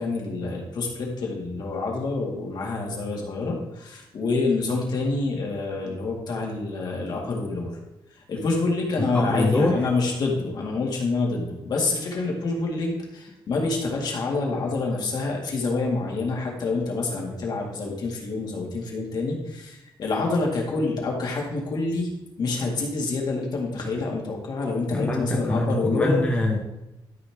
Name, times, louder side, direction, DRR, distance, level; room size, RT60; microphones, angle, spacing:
voice 1, 0.0-7.7 8.3-22.1 22.4-26.2, left 3 dB, 55° left, -1 dB, 2.1 m, -27 dB
voice 2, 9.0-9.8 24.9-26.6, left 2 dB, 15° left, -1 dB, 1.0 m, -24 dB
12.5 x 5.5 x 3.6 m, 0.93 s
wide cardioid pair, 155°, 9 cm